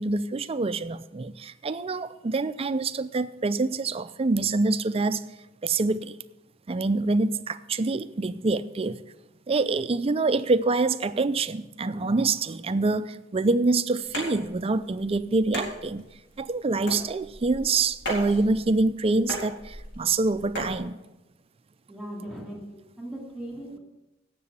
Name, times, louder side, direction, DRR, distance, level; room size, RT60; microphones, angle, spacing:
voice 1, 0.0-5.2 5.6-6.2 6.7-9.0 9.5-16.0 16.4-21.0, right 3 dB, 30° right, 0.4 m, -26 dB
sound 1, 14.1-20.8, equal, 65° left, 4.1 m, -37 dB
voice 2, 21.9-23.8, right 1 dB, ahead, 2.5 m, -38 dB
17.0 x 6.9 x 5.6 m
head